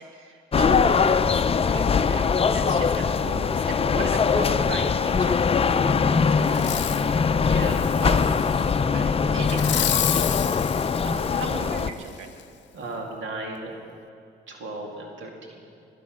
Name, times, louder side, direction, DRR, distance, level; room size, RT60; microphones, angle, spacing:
voice 1, 0.0-2.3 2.5-7.2 8.0-8.4 8.9-9.6 9.9-12.3, right 4 dB, 90° right, 5 dB, 1.4 m, -38 dB
sound 1, 0.5-11.9, left 5 dB, 30° left, 0.5 m, -22 dB
Fireworks, 6.5-7.1 7.6-8.7 9.4-11.8 12.4-12.5, left 11 dB, 65° left, 0.7 m, -30 dB
voice 2, 7.4-8.2 12.7-13.7 14.5-15.3, right 2 dB, 70° right, 0 dB, 2.4 m, -35 dB
22.0 x 8.5 x 6.4 m, 2.5 s
cardioid pair, 90°, 20 cm